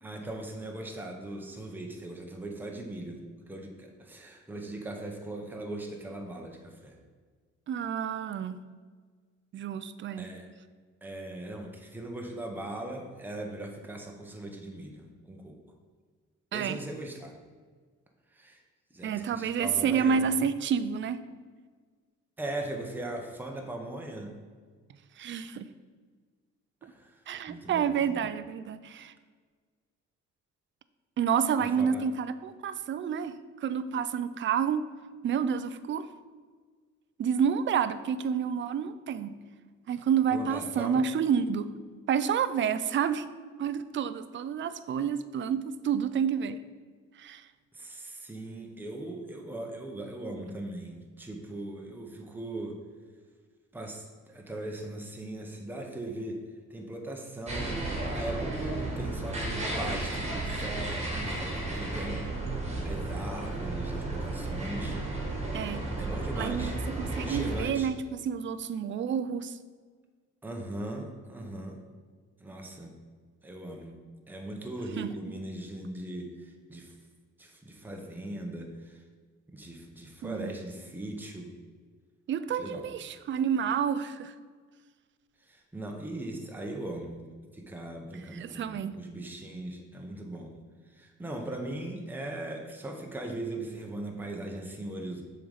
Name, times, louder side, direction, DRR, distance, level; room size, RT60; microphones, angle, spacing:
voice 1, 0.0-3.2 3.5-7.0 10.2-10.5 11.0-15.6 16.5-17.4 18.3-18.6 18.9-20.4 22.4-24.3 26.8-27.2 27.5-28.3 31.6-32.0 40.3-41.0 47.7-52.8 53.7-56.4 56.7-57.9 58.1-62.2 62.8-65.0 66.0-66.8 67.0-67.9 70.4-71.8 72.4-72.9 73.4-74.0 74.3-76.9 77.4-79.0 79.5-81.5 82.6-82.9 85.5-87.2 87.5-90.6 90.9-95.2, right 1 dB, 5° right, 2 dB, 0.9 m, -39 dB
voice 2, 7.7-8.6 9.5-10.3 16.5-16.8 19.0-21.2 25.2-25.7 26.8-26.9 27.3-29.1 31.2-33.4 33.6-34.8 35.2-36.1 37.2-39.4 39.9-41.7 42.1-43.2 43.6-46.6 47.2-47.4 65.5-65.8 66.3-69.6 75.0-75.1 80.2-80.5 82.3-84.3 88.3-89.0, right 7 dB, 40° right, 13 dB, 0.4 m, -29 dB
sound 1, 57.5-67.6, right 2 dB, 20° right, 1.8 m, -33 dB
6.9 x 3.9 x 5.0 m, 1.5 s
cardioid pair, 90°, 30 cm